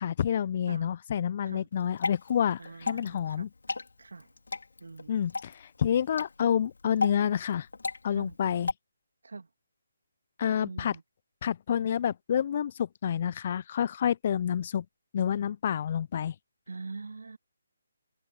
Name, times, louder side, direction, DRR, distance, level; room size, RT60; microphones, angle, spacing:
voice 1, 0.0-2.6 2.9-3.5 5.1-7.7 8.0-8.7 10.4-10.9 11.4-14.8 15.1-16.3, left 9 dB, 40° left, 0.5 m, -28 dB
Water / Drip, 1.7-8.7, left 3 dB, 70° left, 3.9 m, -37 dB
voice 2, 2.6-3.5 4.0-4.3 4.8-5.3 8.1-8.4 9.2-9.5 10.6-11.0 16.7-17.4, right 3 dB, 70° right, 3.0 m, -43 dB
figure-of-eight pair, 145°, 0 cm